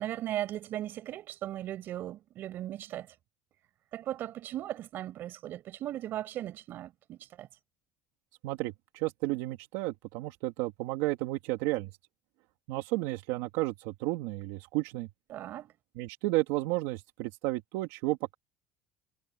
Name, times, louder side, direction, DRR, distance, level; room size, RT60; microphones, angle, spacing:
voice 1, 0.0-3.1 3.9-7.5 15.3-15.7, right 13 dB, 40° right, 7.4 m, -37 dB
voice 2, 8.4-11.9 12.7-15.1 16.0-18.3, right 20 dB, 75° right, 2.7 m, -32 dB
cardioid pair, 175°, 5 cm